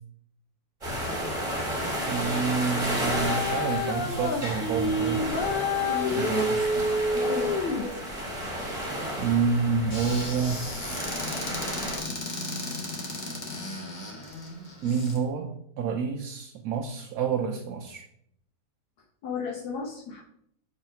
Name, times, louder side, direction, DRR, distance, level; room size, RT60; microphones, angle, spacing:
sound 1, 0.8-12.0, equal, 20° right, 1.4 m, -32 dB
voice 1, 2.1-5.3 6.1-6.9 9.2-10.6 14.8-18.1, right 5 dB, 70° right, 2 dB, 1.1 m, -28 dB
sound 2, 2.9-8.0, left 2 dB, 55° left, 0.6 m, -28 dB
voice 2, 5.9-6.3 7.1-8.0 19.2-20.2, left 5 dB, 75° left, -5 dB, 1.6 m, -34 dB
Squeak / Cupboard open or close, 9.9-15.2, left 2 dB, 30° left, 1.2 m, -36 dB
4.8 x 4.0 x 5.7 m, 0.71 s
omnidirectional pair, 1.8 m